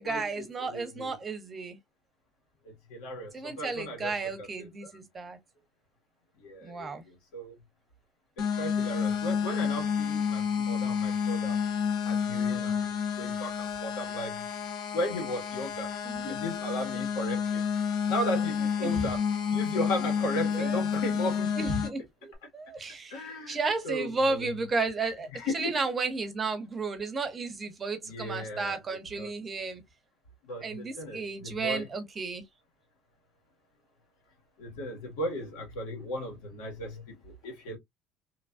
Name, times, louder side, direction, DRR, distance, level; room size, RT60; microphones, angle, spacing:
voice 1, 0.0-1.8 3.3-5.4 6.6-7.0 16.0-16.4 18.8-19.1 20.5-20.8 21.6-29.8 30.6-32.4, right 3 dB, 30° right, 0.9 m, -33 dB
voice 2, 0.6-1.1 2.9-4.9 6.4-7.5 8.6-11.6 12.0-14.4 14.9-15.9 16.2-17.7 18.1-19.2 19.5-21.7 23.1-23.6 23.8-24.5 25.3-25.8 28.1-28.8 29.1-29.3 30.5-31.8 34.6-37.8, left 1 dB, 90° left, 1.7 m, -36 dB
sound 1, 8.4-21.9, left 7 dB, 70° left, 1.2 m, -30 dB
3.0 x 2.3 x 2.5 m
cardioid pair, 110°, 0 cm